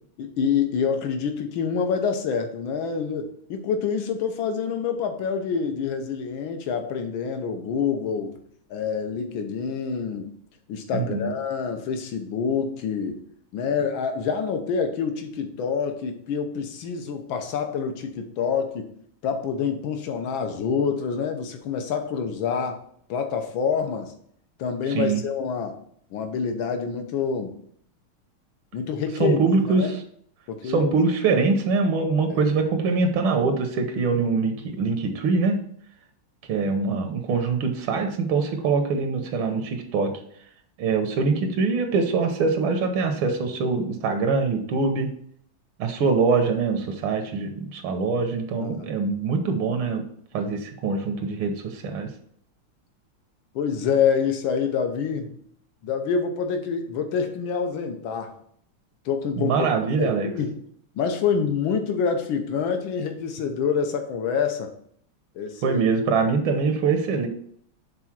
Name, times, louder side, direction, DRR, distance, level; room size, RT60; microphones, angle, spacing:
voice 1, 0.2-8.4 8.7-10.3 10.7-13.2 13.5-18.9 19.2-22.8 23.1-24.1 24.6-25.8 26.1-27.5 28.7-29.9 30.5-30.9 32.3-32.4 48.6-48.9 53.5-55.4 55.8-58.3 59.0-59.7 60.0-60.6 60.9-64.7 65.3-65.8, left 6 dB, 75° left, 6 dB, 1.7 m, -27 dB
voice 2, 10.9-11.3 24.9-25.2 29.2-30.0 30.6-35.6 36.5-40.2 40.8-45.1 45.8-50.0 50.3-52.1 59.4-60.3 65.6-67.3, right 4 dB, 80° right, 5 dB, 1.7 m, -23 dB
6.1 x 4.0 x 5.9 m, 0.64 s
omnidirectional pair, 2.3 m